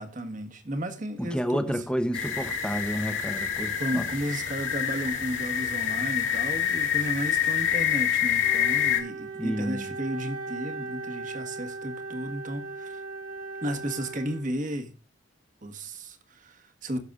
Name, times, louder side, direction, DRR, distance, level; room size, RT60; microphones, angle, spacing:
voice 1, 0.0-1.8 3.8-13.0 13.6-14.9 15.6-17.0, right 1 dB, 40° right, 1.4 m, -34 dB
voice 2, 1.2-4.0 9.4-9.9, equal, 5° left, 0.9 m, -30 dB
sound 1, 2.1-9.0, left 9 dB, 80° left, 3.1 m, -27 dB
Wind instrument woodwind instrument, 8.4-14.8, right 3 dB, 85° right, 2.8 m, -38 dB
19.5 x 6.6 x 2.4 m
head